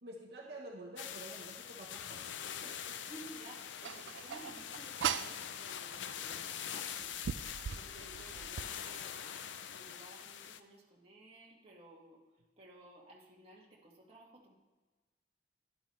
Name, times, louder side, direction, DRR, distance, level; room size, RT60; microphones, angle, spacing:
voice 1, 0.0-2.3 2.6-3.0, right 2 dB, 60° right, -1 dB, 1.1 m, -49 dB
sound 1, 1.0-10.6, left 8 dB, 90° left, 0.5 m, -44 dB
voice 2, 3.0-9.4 9.7-12.2 12.6-14.5, right 1 dB, 30° right, -3 dB, 1.9 m, -56 dB
sound 2, 3.8-5.4 6.4-6.5 7.0-8.7, right 8 dB, 90° right, 0.4 m, -39 dB
11.5 x 11.5 x 3.2 m, 1.3 s
head